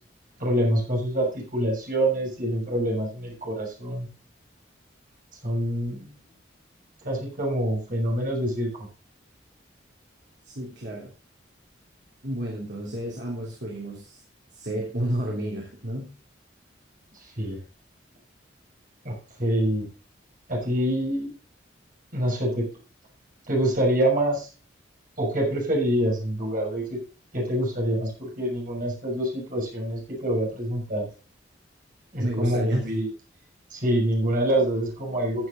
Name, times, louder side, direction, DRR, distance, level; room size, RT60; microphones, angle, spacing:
voice 1, 0.4-4.1 5.4-6.1 7.0-8.9 17.2-17.6 19.0-19.9 20.5-21.3 22.1-22.7 23.5-24.5 25.2-27.0 27.3-31.1 32.1-33.1 33.7-35.5, right 1 dB, 45° right, -2 dB, 6.3 m, -26 dB
voice 2, 10.4-11.1 12.2-14.2 14.5-16.1 32.2-32.9, right 1 dB, 65° right, -3 dB, 3.2 m, -31 dB
15.0 x 8.2 x 3.9 m, 0.35 s
head